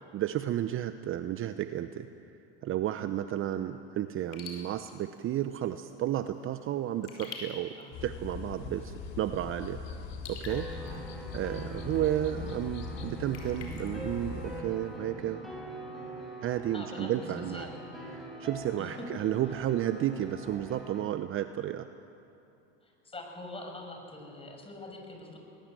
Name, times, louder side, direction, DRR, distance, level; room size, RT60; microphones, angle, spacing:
voice 1, 0.1-2.1 2.6-7.8 8.0-9.8 10.3-11.1 11.3-15.4 16.4-17.7 18.1-21.9, right 12 dB, 35° right, 10 dB, 0.9 m, -32 dB
Raindrop / Drip, 4.2-15.0, left 4 dB, 80° left, 4.6 m, -51 dB
sound 1, 7.9-14.6, left 5 dB, 50° left, 2.8 m, -41 dB
sound 2, 10.5-21.0, right 1 dB, ahead, 7.1 m, -43 dB
voice 2, 16.7-17.7 18.8-19.1 22.8-25.4, left 2 dB, 15° left, 2 dB, 6.1 m, -44 dB
21.0 x 20.5 x 7.7 m, 2.7 s
hypercardioid pair, 95°, 34 cm